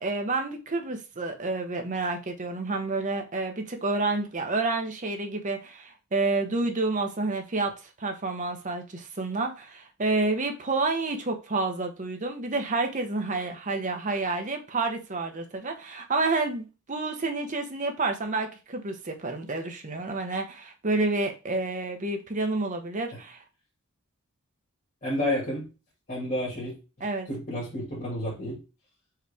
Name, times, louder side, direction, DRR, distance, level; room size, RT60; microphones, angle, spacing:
voice 1, 0.0-7.7 8.0-23.4 27.0-27.3, right 3 dB, 35° right, 0.9 m, -29 dB
voice 2, 25.0-25.7 26.1-26.8 27.3-28.6, left 1 dB, 40° left, 2.1 m, -30 dB
4.8 x 3.1 x 3.5 m
head